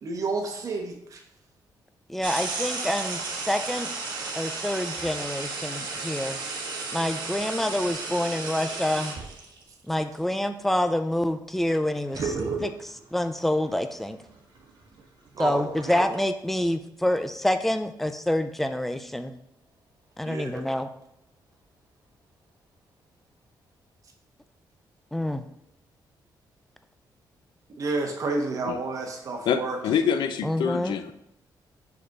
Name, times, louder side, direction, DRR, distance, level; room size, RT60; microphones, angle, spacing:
voice 1, 0.0-1.2 15.3-15.7 20.2-20.7 27.8-29.8, right 3 dB, 45° right, 2 dB, 1.0 m, -30 dB
voice 2, 2.1-3.9 4.4-6.4 6.9-9.2 9.9-12.4 12.6-14.2 15.4-19.3 20.2-20.9 25.1-25.4 30.4-31.0, left 1 dB, 5° left, 9 dB, 0.4 m, -27 dB
sound 1, 2.2-9.6 11.7-11.8 12.1-13.0 13.6-13.8 14.2-16.2, right 4 dB, 75° right, 1.3 m, -33 dB
voice 3, 29.5-31.1, left 7 dB, 80° left, 9 dB, 0.5 m, -26 dB
5.2 x 4.2 x 5.8 m, 0.80 s
wide cardioid pair, 155°, 8 cm